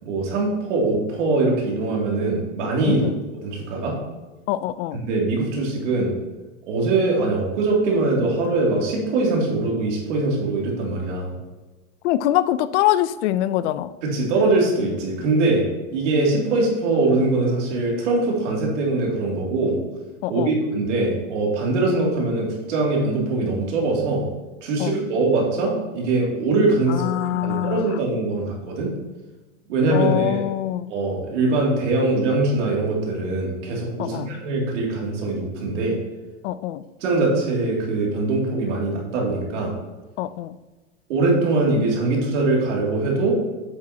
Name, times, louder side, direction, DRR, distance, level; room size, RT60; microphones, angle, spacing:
voice 1, 0.0-3.0 3.4-4.0 5.0-6.1 6.7-11.3 14.0-15.6 15.9-19.8 20.3-24.2 24.6-27.1 27.4-28.9 29.7-30.4 30.9-36.0 37.0-39.7 41.1-43.3, right 2 dB, 75° right, -2 dB, 2.7 m, -22 dB
voice 2, 2.8-3.2 4.5-5.0 12.0-13.9 20.2-20.5 24.8-25.0 26.9-28.0 29.9-30.9 34.0-34.3 36.4-36.8 40.2-40.5, left 13 dB, 65° left, 14 dB, 0.5 m, -24 dB
8.2 x 7.7 x 2.9 m, 1.2 s
supercardioid pair, 135°, 36 cm